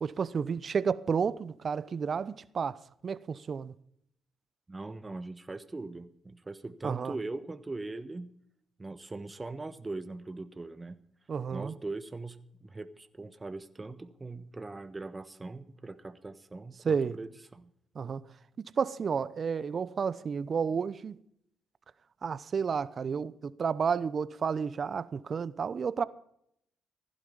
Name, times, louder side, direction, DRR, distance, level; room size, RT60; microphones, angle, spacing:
voice 1, 0.0-3.7 6.8-7.2 11.3-11.8 16.8-17.1 17.9-18.2 18.6-21.2 22.2-26.0, right 6 dB, 50° right, 0.8 m, -31 dB
voice 2, 4.7-8.3 8.8-11.0 11.5-17.7, right 3 dB, 25° right, 1.2 m, -41 dB
16.0 x 11.5 x 5.5 m
supercardioid pair, 55°, 0 cm